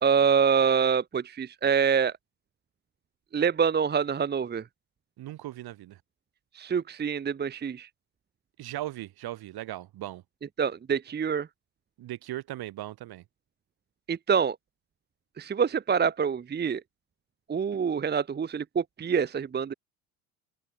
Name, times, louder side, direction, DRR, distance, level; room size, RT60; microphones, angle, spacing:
voice 1, 0.0-2.1 3.3-4.6 6.5-7.9 10.6-11.5 14.1-14.6 15.4-16.8 17.5-19.7, right 6 dB, 25° right, 0.9 m, -26 dB
voice 2, 5.2-6.0 8.6-10.2 12.0-13.2, right 15 dB, 55° right, 3.8 m, -38 dB
supercardioid pair, 85°, 44 cm